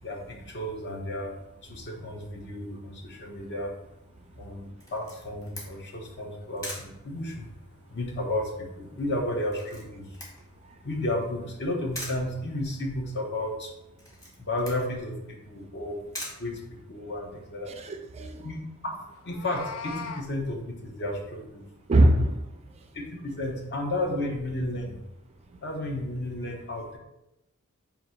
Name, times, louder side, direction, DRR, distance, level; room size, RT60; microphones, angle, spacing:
voice 1, 0.0-3.7 4.4-10.2 10.8-13.7 14.4-16.0 16.4-17.7 18.4-18.6 18.8-18.9 19.2-21.7 22.9-25.0 25.6-27.0, left 1 dB, 55° left, 1 dB, 0.9 m, -33 dB
Camera, 4.8-17.3, left 1 dB, 15° left, 1.1 m, -45 dB
voice 2, 17.7-18.5 21.9-22.4, right 1 dB, 30° right, 6 dB, 0.3 m, -22 dB
Meow, 19.2-20.3, left 5 dB, 70° left, 0.4 m, -38 dB
3.7 x 2.7 x 4.3 m, 0.89 s
head